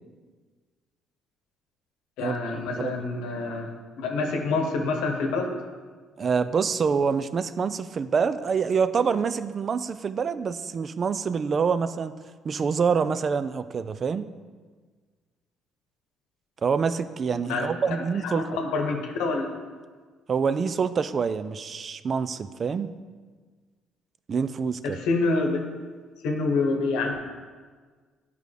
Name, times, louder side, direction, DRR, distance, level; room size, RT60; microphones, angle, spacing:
voice 1, 2.2-3.7 4.0-5.5 17.4-17.7 18.2-19.5 24.8-25.6 26.2-27.3, left 3 dB, 90° left, 3 dB, 1.0 m, -27 dB
voice 2, 6.2-12.1 12.4-14.3 16.6-18.5 20.3-22.9 24.3-25.0, right 6 dB, 45° right, 13 dB, 0.3 m, -26 dB
8.8 x 5.2 x 3.3 m, 1.5 s
cardioid pair, 85°, 0 cm